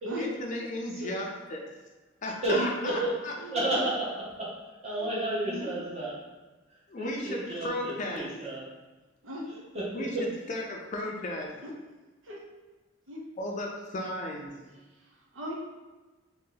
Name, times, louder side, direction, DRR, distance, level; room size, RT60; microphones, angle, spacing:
voice 1, 0.2-1.6 2.2-3.3 6.9-8.2 9.9-10.1 10.5-11.5 13.4-14.6, left 1 dB, 40° left, 0 dB, 0.4 m, -35 dB
voice 2, 2.4-3.1 3.5-6.2 6.7-8.7 9.5-10.3, right 1 dB, 35° right, -6 dB, 0.8 m, -32 dB
voice 3, 3.4-3.8 5.0-5.1 5.4-5.7 7.1-7.3 9.2-9.5 11.6-11.7 12.2-12.4 13.1-13.2 14.7-15.5, equal, 85° right, -2 dB, 0.7 m, -38 dB
2.9 x 2.8 x 3.8 m, 1.2 s
head